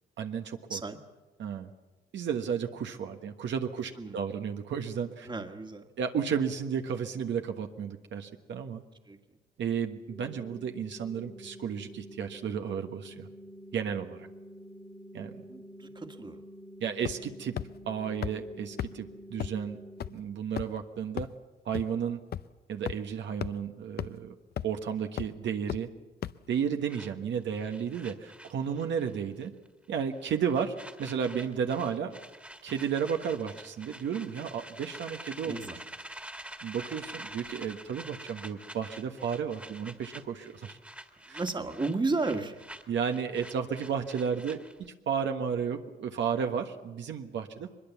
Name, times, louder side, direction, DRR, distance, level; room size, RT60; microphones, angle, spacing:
voice 1, 0.2-0.8 1.4-1.7 2.1-5.3 6.0-8.8 9.6-13.3 13.7-14.3 15.1-15.4 16.8-17.5 17.8-19.8 20.1-21.3 21.6-22.2 22.7-24.4 24.6-25.9 26.5-29.5 29.9-32.1 32.6-35.5 36.6-40.8 41.3-41.4 42.9-47.8, right 7 dB, 65° right, 5 dB, 1.4 m, -33 dB
voice 2, 5.2-5.9 9.1-9.2 15.5-16.4 35.4-35.8 41.3-42.6, right 3 dB, 25° right, 5 dB, 1.8 m, -33 dB
sound 1, 10.1-20.1, equal, 15° left, 2.0 m, -48 dB
sound 2, 17.1-17.3 17.6-17.7 18.2-18.3 18.8-18.9 19.4-19.5 20.0-20.1 20.6-20.8 21.2-21.3 21.7-21.8 22.3-22.4 22.9-23.0 23.4-23.5 24.0-24.1 24.6-24.8 25.2-25.3 25.7-25.8 26.2-26.3, left 10 dB, 55° left, 0.6 m, -33 dB
sound 3, 26.9-29.2 29.4-29.7 30.0-44.9, right 1 dB, 5° right, 1.9 m, -47 dB
22.5 x 21.5 x 7.1 m, 1.2 s
cardioid pair, 90°, 20 cm